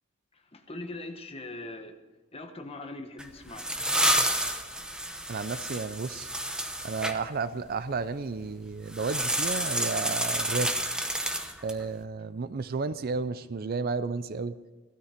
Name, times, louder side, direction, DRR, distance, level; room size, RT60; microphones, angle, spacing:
voice 1, 0.3-1.9 2.3-3.7, left 2 dB, 25° left, 5 dB, 1.3 m, -41 dB
sound 1, 3.2-7.2 8.9-11.8, right 1 dB, 5° right, 0.9 m, -29 dB
voice 2, 5.3-6.3 6.8-10.7 11.6-14.5, right 4 dB, 45° right, 14 dB, 0.5 m, -32 dB
16.0 x 13.0 x 5.1 m, 1.3 s
head